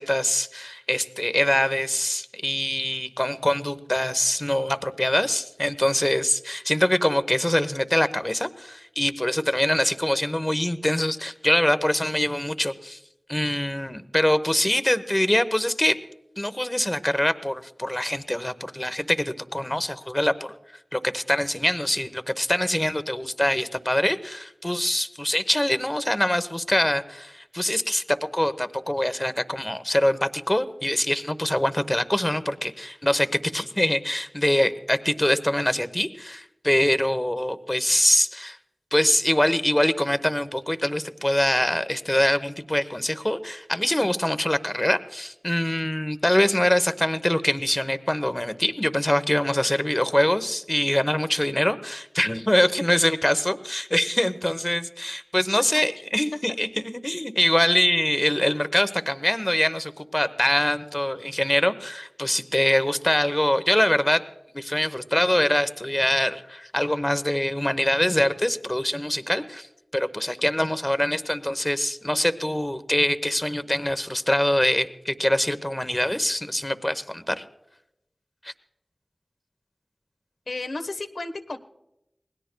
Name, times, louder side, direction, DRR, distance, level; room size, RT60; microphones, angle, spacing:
voice 1, 0.0-13.0 13.3-16.0 16.4-20.5 20.9-38.6 38.9-64.2 64.5-69.7 69.9-77.4 78.4-78.5, left 1 dB, 15° left, 11 dB, 0.9 m, -24 dB
voice 2, 80.5-81.6, left 2 dB, 80° left, 8 dB, 1.1 m, -32 dB
27.5 x 20.5 x 2.2 m, 0.87 s
wide cardioid pair, 60°, 0 cm